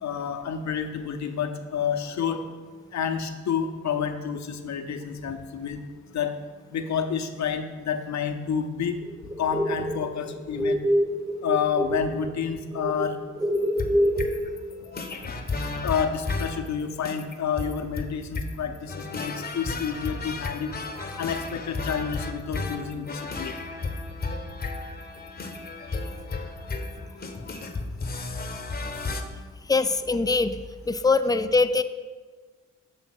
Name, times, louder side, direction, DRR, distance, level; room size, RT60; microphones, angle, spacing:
voice 1, 0.0-2.4 2.9-5.8 6.1-6.3 6.7-9.0 9.4-10.8 11.4-13.2 15.8-20.7 21.2-23.5, left 7 dB, 60° left, 6 dB, 0.7 m, -29 dB
sound 1, 9.0-12.2 12.4-14.3, equal, 5° right, 1.0 m, -25 dB
sound 2, 13.5-29.2, left 3 dB, 30° left, 0.8 m, -33 dB
voice 2, 29.7-30.6 30.9-31.8, left 3 dB, 10° left, 11 dB, 0.3 m, -22 dB
7.2 x 3.4 x 5.9 m, 1.5 s
supercardioid pair, 60°, 32 cm